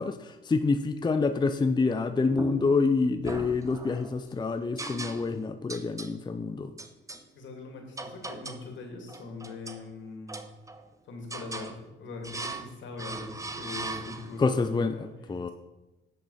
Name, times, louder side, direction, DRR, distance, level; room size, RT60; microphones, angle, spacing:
voice 1, 0.0-6.7 14.4-15.5, left 4 dB, 20° left, 9 dB, 0.6 m, -27 dB
sound 1, 2.3-2.8 3.2-4.1 4.8-5.4 5.7-6.2 6.8-7.2 8.0-8.7 9.1-9.8 10.3-10.9 11.3-11.8 12.2-12.7 13.0-14.5, right 3 dB, 15° right, 0.9 m, -39 dB
voice 2, 7.3-10.4 11.1-15.1, left 3 dB, 70° left, 2 dB, 2.8 m, -41 dB
10.5 x 6.7 x 5.7 m, 1.0 s
cardioid pair, 90°, 20 cm